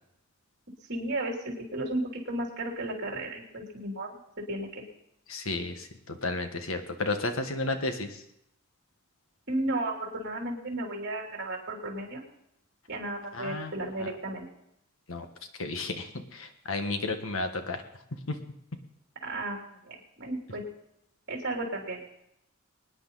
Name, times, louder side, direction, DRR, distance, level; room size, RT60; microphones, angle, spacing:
voice 1, 0.9-4.1 4.5-4.8 9.5-12.2 12.9-14.5 19.2-20.6 21.3-22.0, right 1 dB, 55° right, 0 dB, 3.3 m, -34 dB
voice 2, 5.3-8.2 13.3-13.7 14.0-14.1 15.1-15.3 15.6-17.8 18.3-18.4, left 2 dB, 75° left, 6 dB, 1.5 m, -32 dB
23.5 x 9.9 x 4.1 m, 0.79 s
head